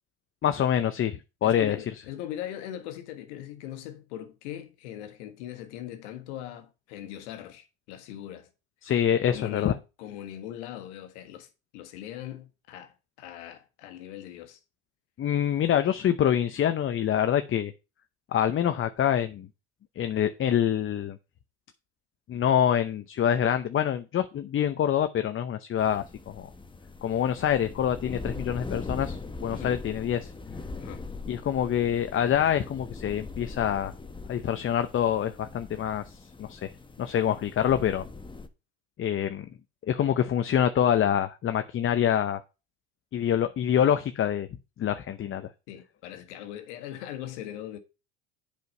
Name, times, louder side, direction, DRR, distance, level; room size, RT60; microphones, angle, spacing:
voice 1, 0.4-1.8 8.8-9.7 15.2-17.7 18.3-19.5 20.0-21.2 22.3-26.5 27.0-30.3 31.3-33.9 34.3-36.1 36.4-36.7 37.0-38.0 39.0-39.5 39.9-42.4 43.1-44.5 44.8-45.5, left 9 dB, 35° left, 0.8 m, -26 dB
voice 2, 1.4-8.5 9.3-14.6 29.5-29.8 30.8-31.0 45.7-47.8, left 11 dB, 80° left, 1.6 m, -40 dB
sound 1, 25.8-38.5, left 3 dB, 15° left, 1.2 m, -41 dB
7.9 x 5.2 x 5.4 m
hypercardioid pair, 80°, 34 cm